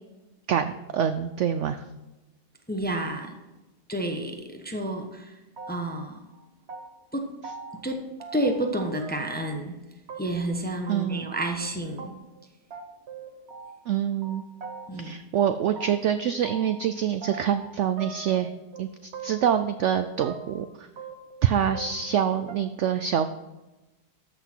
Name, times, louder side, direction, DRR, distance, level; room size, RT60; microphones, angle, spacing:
voice 1, 0.5-1.8 10.9-11.3 13.9-14.4 15.0-18.5 18.8-20.9 21.4-23.4, right 9 dB, 80° right, 10 dB, 0.6 m, -26 dB
voice 2, 2.7-3.4 3.9-5.4 5.7-6.2 7.1-7.3 7.8-8.0 8.3-9.8 10.2-12.2 14.9-15.2, right 1 dB, 10° left, 3 dB, 0.6 m, -30 dB
sound 1, 5.6-6.1 6.3-7.1 7.4-7.8 8.2-8.7 9.0-9.5 10.1-10.5 10.9-11.0 11.3-11.4 11.6-11.7 12.0-12.1 12.4-12.5 12.7-13.9 14.2-15.1 15.4-16.9 17.2-17.7 18.0-18.8 19.1-19.6 19.9-20.6 21.0-22.2 22.5-22.6, right 5 dB, 45° right, 1.1 m, -41 dB
13.5 x 6.1 x 4.5 m, 1.0 s
omnidirectional pair, 1.8 m